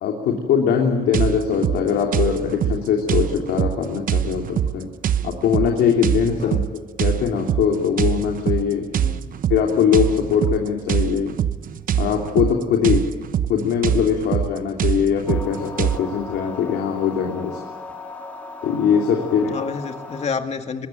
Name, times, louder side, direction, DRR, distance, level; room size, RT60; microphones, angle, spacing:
voice 1, 0.0-4.9 5.2-8.9 9.5-11.3 12.0-13.0 13.5-17.6 18.6-19.5, left 7 dB, 85° left, 1 dB, 3.2 m, -21 dB
sound 1, 1.1-16.0, right 9 dB, 55° right, 1.0 m, -24 dB
voice 2, 8.9-9.4 19.5-20.9, left 5 dB, 40° left, 6 dB, 2.2 m, -29 dB
sound 2, 15.3-20.3, left 4 dB, 10° left, 4.5 m, -37 dB
23.0 x 21.0 x 9.1 m, 1.4 s
cardioid pair, 110°, 17 cm